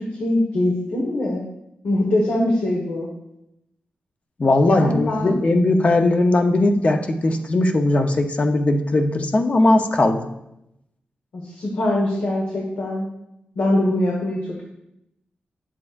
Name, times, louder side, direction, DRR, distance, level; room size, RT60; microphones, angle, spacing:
voice 1, 0.0-1.4 1.8-3.1 4.7-5.4 11.3-13.1 13.5-14.4, left 1 dB, 80° left, -2 dB, 1.4 m, -22 dB
voice 2, 4.4-10.2, left 2 dB, 40° left, 5 dB, 0.8 m, -18 dB
9.5 x 7.4 x 2.5 m, 0.83 s
wide cardioid pair, 95°, 3 cm